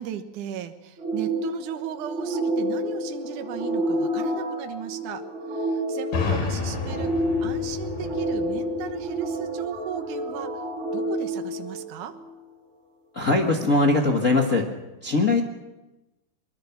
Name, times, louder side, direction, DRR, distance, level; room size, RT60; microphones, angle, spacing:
voice 1, 0.0-5.2 5.5-7.1 7.4-10.5 10.9-12.1, right 9 dB, 70° right, 7 dB, 2.6 m, -36 dB
sound 1, 1.0-12.3, equal, 40° right, 5.1 m, -29 dB
sound 2, 6.1-9.8, left 5 dB, 80° left, 4.5 m, -31 dB
voice 2, 13.1-14.7 15.0-15.4, left 2 dB, 55° left, 0 dB, 0.8 m, -21 dB
23.0 x 22.0 x 5.9 m, 1.0 s
omnidirectional pair, 3.9 m